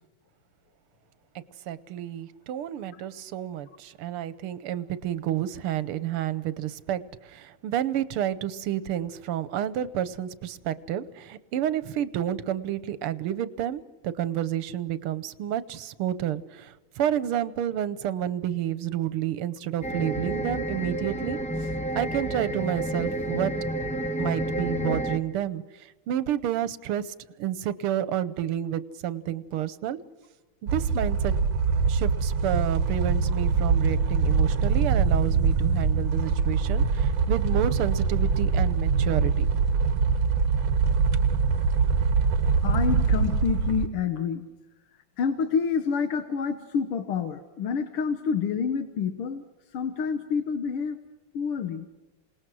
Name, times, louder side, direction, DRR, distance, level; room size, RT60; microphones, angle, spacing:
voice 1, 1.7-21.4 22.0-23.5 24.2-30.0 30.6-31.3 31.9-39.5, right 11 dB, 80° right, 16 dB, 1.8 m, -30 dB
sound 1, 19.8-25.2, right 1 dB, 5° left, 0.7 m, -30 dB
sound 2, 30.7-43.9, right 5 dB, 65° right, 1.9 m, -23 dB
voice 2, 42.6-44.5 45.2-49.4 49.7-51.0 51.3-51.9, left 6 dB, 85° left, 9 dB, 2.0 m, -28 dB
27.5 x 19.0 x 6.2 m, 1.1 s
omnidirectional pair, 2.4 m